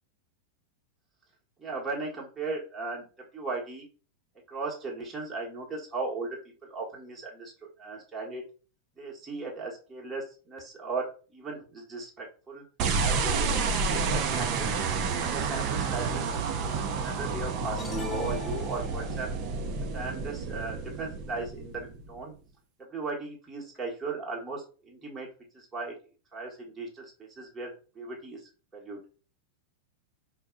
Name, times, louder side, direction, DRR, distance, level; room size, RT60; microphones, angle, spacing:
voice 1, 1.6-3.1 3.3-3.9 4.5-6.3 6.6-8.4 9.0-12.6 13.0-14.7 15.2-16.3 16.7-19.3 19.9-22.3 22.9-25.3 25.5-25.9 26.3-28.4 28.7-29.0, right 3 dB, 15° right, -3 dB, 1.2 m, -37 dB
sound 1, 12.8-22.2, right 4 dB, 40° right, 0.6 m, -30 dB
sound 2, 17.8-19.3, left 3 dB, 15° left, 0.6 m, -39 dB
4.6 x 2.2 x 3.7 m, 0.37 s
figure-of-eight pair, 90°, 0 cm